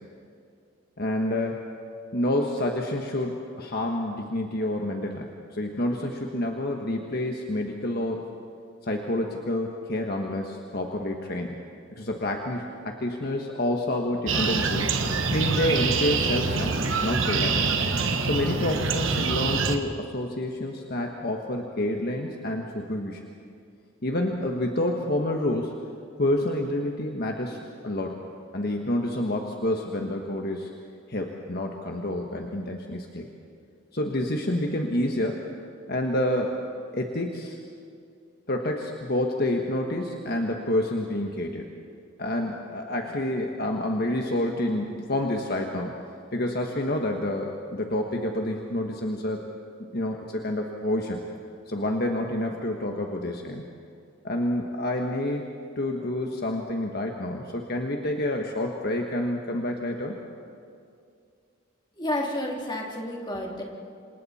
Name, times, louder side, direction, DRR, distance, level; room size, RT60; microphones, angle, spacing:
voice 1, 1.0-1.6 2.1-8.2 8.9-11.6 12.0-14.9 15.3-16.7 17.0-17.7 18.2-23.2 24.0-25.7 26.2-27.6 27.8-28.2 28.5-30.7 31.1-33.3 33.9-35.5 35.9-36.6 36.9-37.6 38.5-41.6 42.2-46.0 46.3-49.4 49.9-51.2 51.7-53.6 54.2-55.5 55.8-60.2, left 1 dB, 50° left, 2 dB, 1.4 m, -28 dB
sound 1, 14.3-19.8, right 4 dB, 70° right, 1.3 m, -25 dB
voice 2, 61.9-63.6, left 1 dB, 20° left, -1 dB, 3.0 m, -30 dB
28.0 x 26.5 x 4.3 m, 2.4 s
head